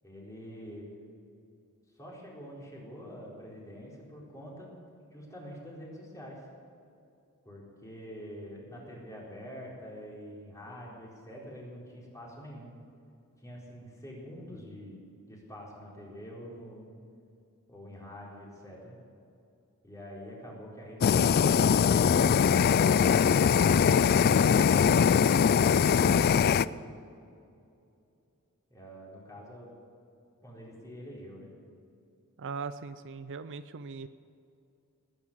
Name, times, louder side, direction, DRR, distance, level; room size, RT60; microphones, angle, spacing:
voice 1, 0.0-0.9 2.0-4.7 5.1-6.4 7.4-12.7 13.4-15.0 15.3-16.9 17.7-19.0 19.8-23.8 28.7-29.7 30.4-31.5, equal, 15° left, -4 dB, 4.3 m, -46 dB
Fire, 21.0-26.6, left 7 dB, 45° left, 0.3 m, -22 dB
voice 2, 32.4-34.1, right 5 dB, 55° right, 12 dB, 0.5 m, -39 dB
19.5 x 10.0 x 7.4 m, 2.5 s
head